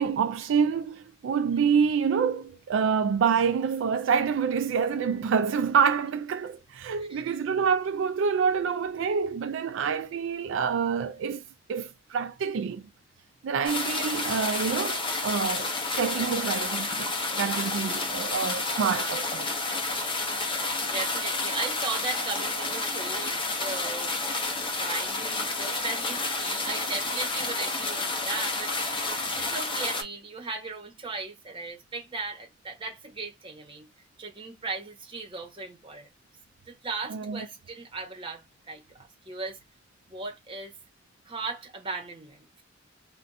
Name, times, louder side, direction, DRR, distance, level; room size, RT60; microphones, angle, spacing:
voice 1, 0.0-11.4 11.7-12.8 13.4-19.5 37.1-37.4, right 6 dB, 80° right, 0.3 m, -27 dB
sound 1, 13.7-30.0, left 3 dB, 25° left, 0.7 m, -30 dB
voice 2, 20.8-24.1 24.7-29.1 29.4-33.9 34.2-36.1 36.7-39.6 40.1-40.7 41.2-42.6, right 3 dB, 25° right, 1.0 m, -37 dB
2.5 x 2.2 x 4.0 m
head